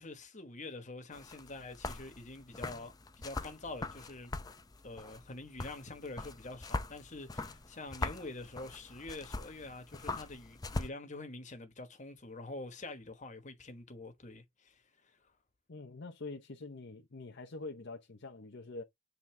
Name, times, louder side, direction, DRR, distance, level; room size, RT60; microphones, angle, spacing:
voice 1, 0.0-4.3 4.8-15.3, left 2 dB, 35° left, 1.3 m, -46 dB
sound 1, 1.1-10.9, left 2 dB, 20° left, 0.6 m, -42 dB
voice 2, 15.7-18.8, left 3 dB, 60° left, 0.8 m, -45 dB
7.5 x 3.9 x 3.3 m
head